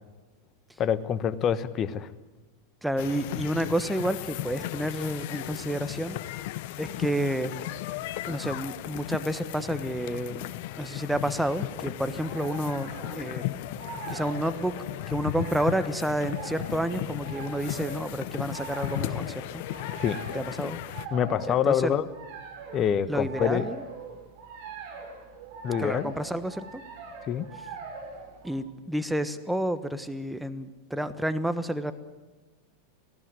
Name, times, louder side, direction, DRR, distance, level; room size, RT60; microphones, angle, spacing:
voice 1, 0.8-2.1 20.0-20.2 21.1-22.1 22.7-23.7 25.6-26.1 27.3-27.5, left 9 dB, 35° left, 16 dB, 1.1 m, -26 dB
voice 2, 2.8-6.2 6.8-7.5 8.3-10.5 10.8-13.4 14.1-14.7 15.1-19.6 20.3-20.8 21.5-21.9 23.1-23.8 25.8-26.8 28.4-31.9, right 1 dB, 5° right, 11 dB, 1.3 m, -30 dB
sound 1, 3.0-21.1, left 15 dB, 55° left, 0.8 m, -36 dB
sound 2, 11.4-28.5, right 5 dB, 55° right, 6.4 m, -42 dB
18.5 x 16.5 x 9.6 m, 1.2 s
hypercardioid pair, 90°, 0 cm